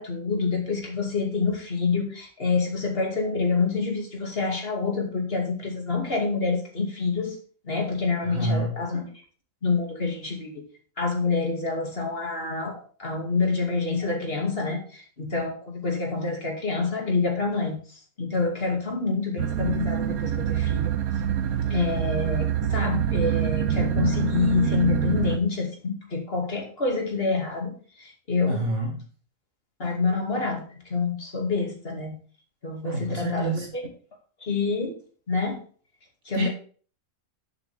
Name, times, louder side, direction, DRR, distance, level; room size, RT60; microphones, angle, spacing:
voice 1, 0.0-7.4 7.6-9.1 9.6-10.6 11.0-20.9 21.7-28.7 29.8-32.1 32.6-33.8 34.4-34.9 35.3-35.6 36.3-36.5, left 4 dB, 40° left, 1 dB, 2.5 m, -27 dB
voice 2, 8.2-8.7 28.5-29.0 32.8-33.7 36.3-36.5, right 2 dB, 70° right, 2 dB, 1.8 m, -28 dB
sound 1, 19.4-25.4, right 9 dB, 90° right, 1.3 m, -26 dB
11.0 x 7.3 x 3.5 m, 0.42 s
omnidirectional pair, 1.5 m